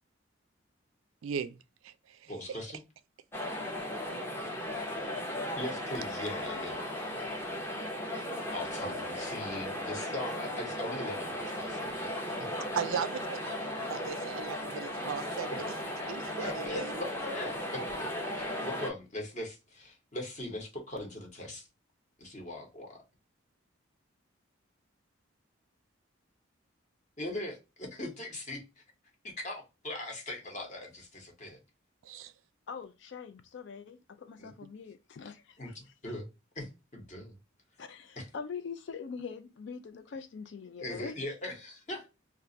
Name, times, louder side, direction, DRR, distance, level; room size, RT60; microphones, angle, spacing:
voice 1, 1.2-2.6 12.7-13.4 13.9-15.7 16.1-17.0 18.3-18.4 32.0-32.3, right 7 dB, 80° right, 0.4 m, -38 dB
voice 2, 2.3-2.8 5.5-6.8 8.5-12.0 12.4-12.5 15.5-15.6 16.0-16.1 16.4-18.1 18.4-21.7 22.2-23.0 27.2-28.8 29.2-31.6 34.4-34.5 35.6-36.3 36.5-37.4 38.2-38.3 40.8-42.1, left 1 dB, 35° left, 0.9 m, -40 dB
sound 1, 3.3-18.9, left 1 dB, 10° left, 0.6 m, -36 dB
voice 3, 32.7-35.8 37.8-41.2, left 5 dB, 60° left, 0.3 m, -43 dB
2.4 x 2.3 x 3.8 m
head